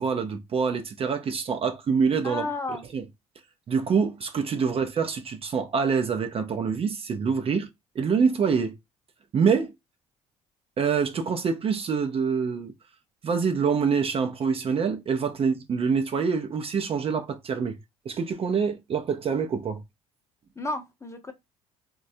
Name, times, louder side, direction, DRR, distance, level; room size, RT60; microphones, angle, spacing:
voice 1, 0.0-2.4 2.9-3.0 3.7-7.7 8.0-8.7 9.3-9.7 10.8-12.7 13.2-17.8 18.1-19.8, right 6 dB, 40° right, 0.5 m, -25 dB
voice 2, 2.2-2.9 20.6-21.3, left 2 dB, 15° left, 0.7 m, -33 dB
3.1 x 2.2 x 2.6 m
hypercardioid pair, 60°, 16 cm